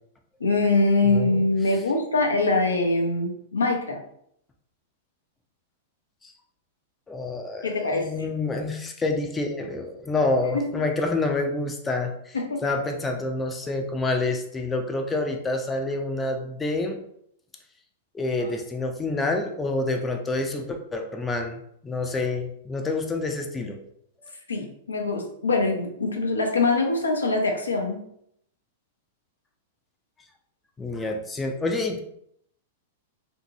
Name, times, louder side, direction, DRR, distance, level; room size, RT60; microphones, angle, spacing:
voice 1, 0.4-4.0 7.6-8.1 10.5-10.6 12.3-12.6 24.5-28.0, left 3 dB, 85° left, 1 dB, 0.6 m, -23 dB
voice 2, 1.0-1.4 6.2-6.3 7.1-12.4 12.6-17.0 18.1-23.8 30.8-32.0, left 2 dB, 15° left, 3 dB, 0.4 m, -28 dB
2.8 x 2.7 x 2.6 m, 0.71 s
hypercardioid pair, 105°, 0 cm